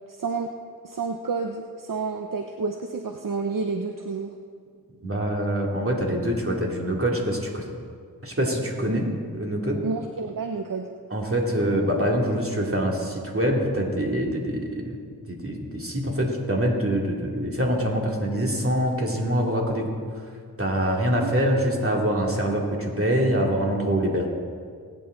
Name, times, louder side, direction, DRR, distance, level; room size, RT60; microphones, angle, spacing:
voice 1, 0.1-0.5 0.8-4.4 8.9-9.2 9.8-10.9 21.2-21.3, right 4 dB, 60° right, 5 dB, 0.8 m, -30 dB
voice 2, 5.0-7.6 8.2-9.0 9.3-9.8 11.1-15.0 15.3-19.8 20.6-24.3, equal, 35° right, -1 dB, 2.8 m, -25 dB
20.0 x 9.3 x 4.0 m, 2.1 s
cardioid pair, 40°, 36 cm